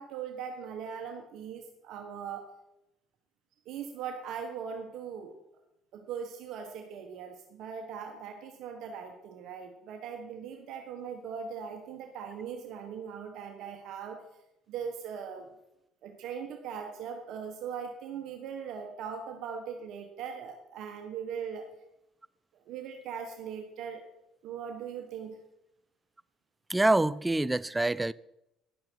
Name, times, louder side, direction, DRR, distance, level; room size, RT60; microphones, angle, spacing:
voice 1, 0.0-2.5 3.6-5.4 5.9-14.2 14.7-15.5 16.0-21.7 22.7-24.0 24.4-25.4, right 7 dB, 70° right, 1.2 m, -40 dB
voice 2, 26.7-28.1, right 2 dB, 10° right, 0.3 m, -26 dB
11.0 x 7.7 x 4.6 m
supercardioid pair, 85°, 0 cm